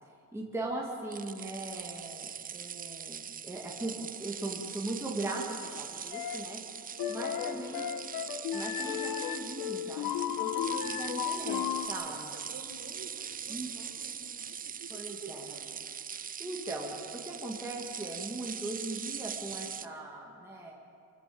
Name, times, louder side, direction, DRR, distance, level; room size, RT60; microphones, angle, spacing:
voice 1, 0.0-6.6 7.1-7.9 8.5-12.3 13.5-13.7 14.9-15.5 16.4-20.7, right 2 dB, 10° right, -3 dB, 2.3 m, -39 dB
sound 1, 1.1-19.9, right 7 dB, 25° right, 0.5 m, -41 dB
sound 2, 6.1-6.5 7.0-11.9, left 10 dB, 80° left, 1.2 m, -34 dB
voice 2, 6.9-8.0 11.9-15.7, right 4 dB, 45° right, 2 dB, 4.2 m, -51 dB
27.0 x 16.0 x 7.8 m, 2.5 s
cardioid pair, 140°, 34 cm